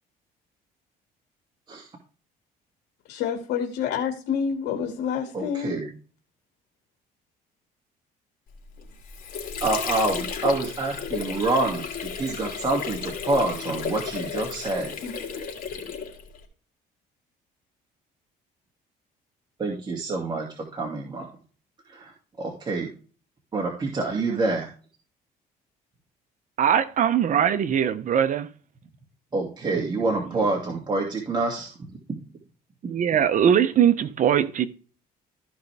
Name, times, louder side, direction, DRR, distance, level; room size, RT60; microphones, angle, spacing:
voice 1, 3.1-5.8 15.0-15.1, left 7 dB, 80° left, 2.2 m, -28 dB
voice 2, 5.3-5.9 9.6-14.9 19.6-21.4 21.9-22.9 23.5-24.7 29.3-32.0, right 2 dB, 25° right, 2.4 m, -27 dB
Water / Sink (filling or washing), 8.8-16.4, left 6 dB, 55° left, 3.3 m, -33 dB
voice 3, 26.6-28.5 32.8-34.7, right 9 dB, 50° right, 0.9 m, -21 dB
14.5 x 5.4 x 3.5 m
cardioid pair, 110°, 17 cm